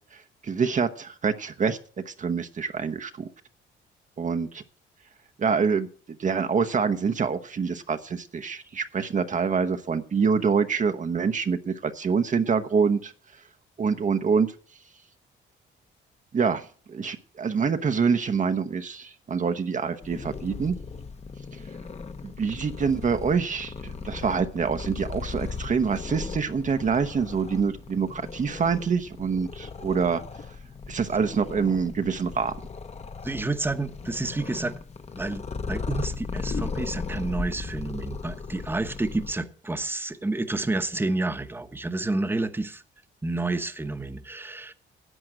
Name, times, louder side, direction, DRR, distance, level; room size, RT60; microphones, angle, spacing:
voice 1, 0.1-1.8 2.1-3.3 4.2-4.6 5.4-5.9 6.2-13.1 13.8-14.5 16.3-20.8 22.2-30.2 30.9-32.5, right 5 dB, 40° right, 8 dB, 0.9 m, -26 dB
Purr, 20.0-39.3, left 4 dB, 35° left, 1.0 m, -37 dB
voice 2, 33.2-34.7 35.2-42.8 43.2-44.7, right 2 dB, 10° right, 9 dB, 1.0 m, -29 dB
11.0 x 7.7 x 7.5 m, 0.43 s
cardioid pair, 90°, 20 cm